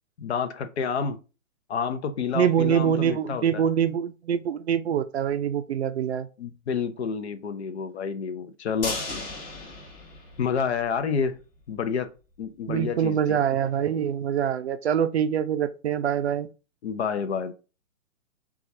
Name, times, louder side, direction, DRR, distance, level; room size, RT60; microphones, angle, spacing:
voice 1, 0.2-1.2 1.7-3.6 6.4-9.0 10.4-11.4 11.7-12.1 12.4-13.4 16.8-17.5, left 6 dB, 50° left, 0.7 m, -29 dB
voice 2, 2.3-6.3 12.7-16.5, right 9 dB, 50° right, 0.5 m, -24 dB
sound 1, 8.8-11.0 11.3-11.4 11.7-11.8, left 3 dB, 20° left, 1.1 m, -35 dB
5.6 x 2.4 x 2.6 m
figure-of-eight pair, 125°, 42 cm